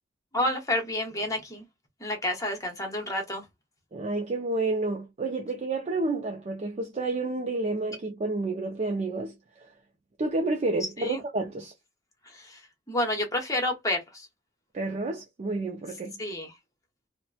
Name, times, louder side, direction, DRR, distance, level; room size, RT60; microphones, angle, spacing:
voice 1, 0.3-1.6 2.0-3.5 11.0-11.2 12.2-14.3 16.2-16.6, left 1 dB, 20° left, 0.9 m, -30 dB
voice 2, 3.9-9.7 10.2-11.7 14.7-16.2, right 2 dB, 35° right, 0.4 m, -30 dB
2.9 x 2.1 x 2.3 m
head